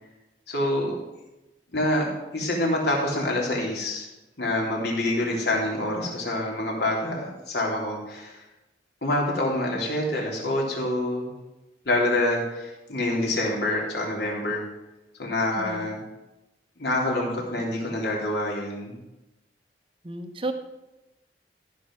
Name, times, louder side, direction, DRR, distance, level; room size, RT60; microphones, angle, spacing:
voice 1, 0.5-0.9 1.7-4.1 4.4-8.4 9.0-11.3 11.8-14.6 15.2-16.0 16.8-18.9, left 1 dB, 65° left, -2 dB, 3.4 m, -26 dB
voice 2, 15.5-15.9 20.0-20.5, right 2 dB, 30° right, 7 dB, 1.0 m, -32 dB
14.0 x 6.0 x 6.2 m, 0.98 s
head